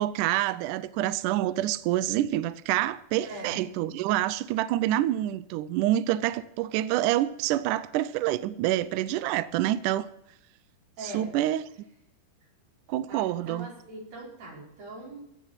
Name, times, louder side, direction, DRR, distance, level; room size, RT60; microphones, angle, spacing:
voice 1, 0.0-10.1 11.1-11.6 12.9-13.7, right 14 dB, 85° right, 1.8 m, -27 dB
voice 2, 3.2-3.6 11.0-11.3 13.1-15.2, right 1 dB, 65° right, 6.6 m, -41 dB
16.0 x 7.5 x 8.0 m
omnidirectional pair, 4.3 m